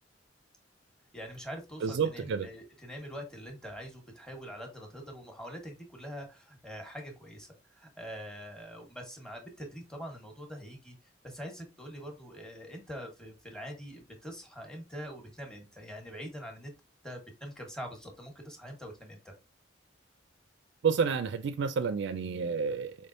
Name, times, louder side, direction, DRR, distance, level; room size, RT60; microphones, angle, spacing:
voice 1, 1.1-11.0 11.2-16.7 17.0-19.3, equal, 5° left, 1.1 m, -44 dB
voice 2, 1.8-2.5 20.8-23.0, right 6 dB, 65° right, 0.4 m, -29 dB
4.7 x 3.4 x 2.5 m
head